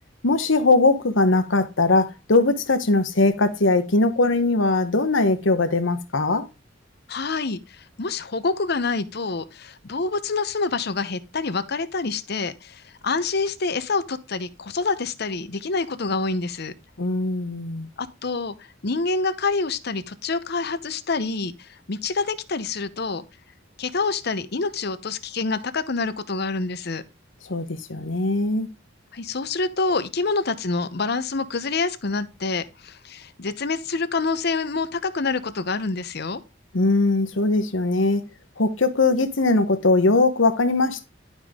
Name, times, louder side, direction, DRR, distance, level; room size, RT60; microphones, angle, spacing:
voice 1, 0.2-6.5 17.0-17.9 27.5-28.7 36.7-38.2 38.6-41.1, left 3 dB, 75° left, 1.1 m, -20 dB
voice 2, 7.1-16.7 18.0-18.5 18.8-23.2 23.8-27.0 29.1-36.4, left 4 dB, 55° left, 0.8 m, -27 dB
11.5 x 5.2 x 3.7 m
head